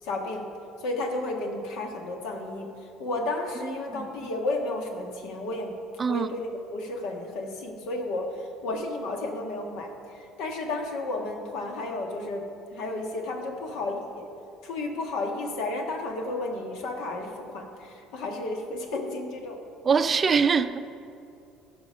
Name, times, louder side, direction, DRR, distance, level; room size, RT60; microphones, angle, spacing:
voice 1, 0.0-0.5 0.8-2.7 3.0-5.8 6.1-12.4 12.7-14.3 14.6-19.6, left 2 dB, 75° left, 1.4 m, -32 dB
voice 2, 19.8-20.8, right 5 dB, 35° right, 0.4 m, -23 dB
15.0 x 5.1 x 5.6 m
supercardioid pair, 90°, 0 cm